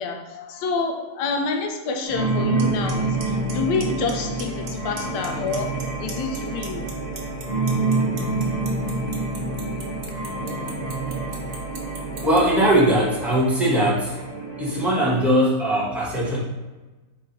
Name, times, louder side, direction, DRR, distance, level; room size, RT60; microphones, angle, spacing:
voice 1, 0.0-6.9 11.8-11.9, left 4 dB, 80° left, 4 dB, 1.2 m, -28 dB
sound 1, 2.1-15.3, right 2 dB, 25° left, 1.3 m, -27 dB
Clock, 2.6-2.7 2.9-3.2 3.5-4.1 4.4-4.7 5.0-5.8 6.1-12.4, right 6 dB, 60° right, 0.6 m, -37 dB
voice 2, 12.2-14.2 14.6-16.4, right 1 dB, ahead, -6 dB, 0.9 m, -20 dB
3.7 x 3.3 x 4.2 m, 1.2 s
omnidirectional pair, 1.9 m